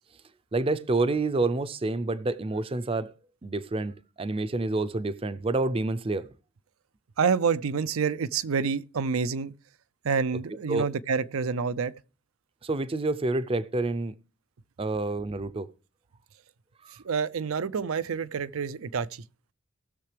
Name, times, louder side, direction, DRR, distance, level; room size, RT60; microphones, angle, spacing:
voice 1, 0.5-3.1 3.4-6.3 10.3-10.4 10.7-10.9 12.6-14.2 14.8-15.7 16.8-16.9, right 2 dB, 25° right, 0.5 m, -28 dB
voice 2, 7.2-9.5 10.0-11.9 17.0-19.1, right 5 dB, 85° right, 0.5 m, -27 dB
19.0 x 6.7 x 3.3 m
head